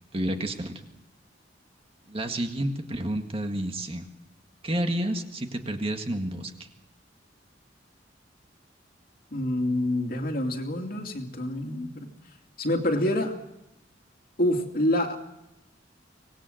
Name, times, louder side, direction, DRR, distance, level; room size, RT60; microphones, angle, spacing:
voice 1, 0.1-0.7 2.1-4.1 4.6-6.5, right 1 dB, 30° right, 5 dB, 1.9 m, -30 dB
voice 2, 9.3-12.1 12.6-13.3 14.4-15.2, left 1 dB, 50° left, 4 dB, 2.6 m, -27 dB
25.0 x 19.0 x 7.8 m, 0.90 s
head